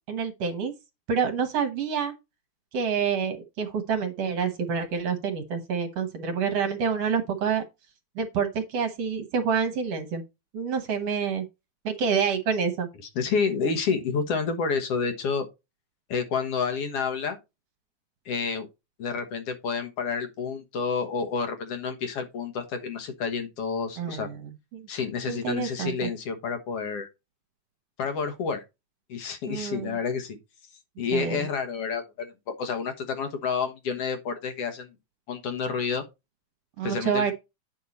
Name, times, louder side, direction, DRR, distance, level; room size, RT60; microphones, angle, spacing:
voice 1, 0.1-0.7 1.1-2.1 2.7-7.6 8.2-10.2 10.5-11.5 11.8-12.9 24.0-24.8 25.3-26.1 29.5-30.0 31.1-31.4 36.8-37.3, right 6 dB, 60° right, 2.0 m, -27 dB
voice 2, 13.2-15.5 16.1-17.4 18.3-18.7 19.0-24.3 24.9-27.1 28.0-28.6 29.1-30.4 31.0-34.9 35.3-36.0 36.8-37.3, left 5 dB, 60° left, 2.1 m, -29 dB
8.8 x 5.6 x 4.1 m
omnidirectional pair, 3.4 m